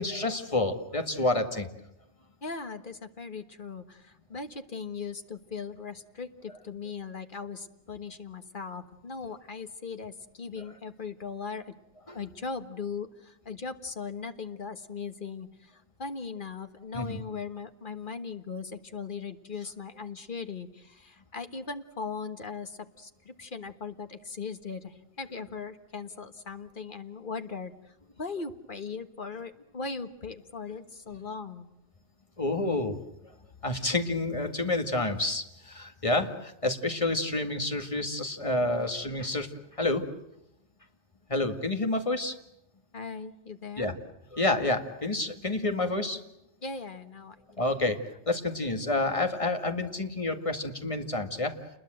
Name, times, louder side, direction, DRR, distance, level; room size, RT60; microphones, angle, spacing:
voice 1, 0.0-1.7 12.1-12.2 16.9-17.2 32.4-33.0 33.6-39.5 39.8-40.1 41.3-42.4 43.8-44.0 44.3-46.2 47.6-48.0 48.3-51.6, left 2 dB, 30° left, 6 dB, 2.1 m, -29 dB
voice 2, 2.4-11.7 12.1-31.7 38.7-38.9 42.9-43.9 46.6-47.9, left 5 dB, 45° left, 9 dB, 1.6 m, -39 dB
29.0 x 21.5 x 7.8 m, 0.85 s
omnidirectional pair, 1.2 m